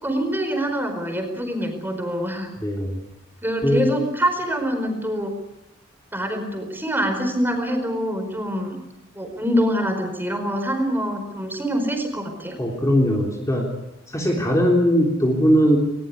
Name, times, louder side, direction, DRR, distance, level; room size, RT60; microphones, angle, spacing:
voice 1, 0.0-2.5 3.4-5.3 6.1-8.8 9.1-12.6, equal, 10° right, 5 dB, 4.7 m, -25 dB
voice 2, 2.6-3.0 3.6-3.9 12.6-13.7 14.1-15.8, equal, 15° left, 0 dB, 3.4 m, -19 dB
20.5 x 20.5 x 9.7 m, 0.88 s
head